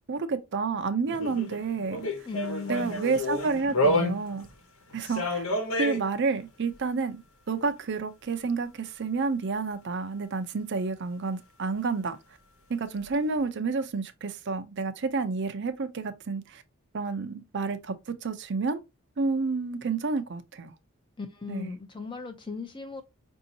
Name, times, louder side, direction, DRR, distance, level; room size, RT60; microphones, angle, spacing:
voice 1, 0.1-2.3 2.7-4.5 4.9-5.4 5.8-7.2 7.5-12.2 12.7-16.6 16.9-18.8 19.2-20.7 21.5-21.8, right 4 dB, 55° right, 0.5 m, -30 dB
sound 1, 1.0-4.5 4.9-6.0 9.6-9.7, left 1 dB, 75° left, 1.1 m, -29 dB
voice 2, 2.3-3.0 21.2-23.0, left 4 dB, 20° left, 0.6 m, -37 dB
5.4 x 2.7 x 2.7 m
head